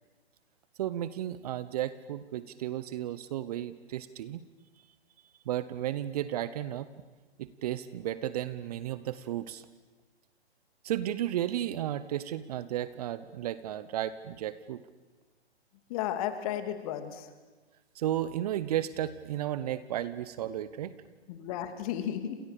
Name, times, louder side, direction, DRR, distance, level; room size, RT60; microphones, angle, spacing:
voice 1, 0.8-4.4 5.4-6.9 7.4-9.7 10.8-14.8 17.9-21.0, right 12 dB, 35° right, 15 dB, 1.1 m, -33 dB
voice 2, 15.9-17.3 21.3-22.4, left 10 dB, 35° left, 8 dB, 3.0 m, -33 dB
29.0 x 28.0 x 6.8 m, 1.3 s
figure-of-eight pair, 135°, 33 cm